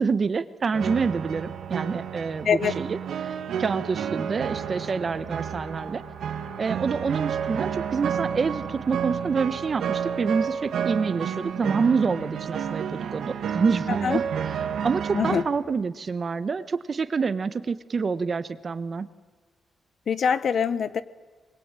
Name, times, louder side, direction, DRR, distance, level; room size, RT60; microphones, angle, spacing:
voice 1, 0.0-3.0 3.6-6.0 6.6-14.2 14.8-19.1, right 5 dB, 40° right, 12 dB, 1.2 m, -27 dB
sound 1, 0.7-15.4, right 8 dB, 85° right, 1.7 m, -31 dB
voice 2, 13.9-14.2 15.1-15.4 20.1-21.0, left 7 dB, 55° left, 15 dB, 1.1 m, -24 dB
23.5 x 21.5 x 9.1 m, 1.4 s
cardioid pair, 130°, 0 cm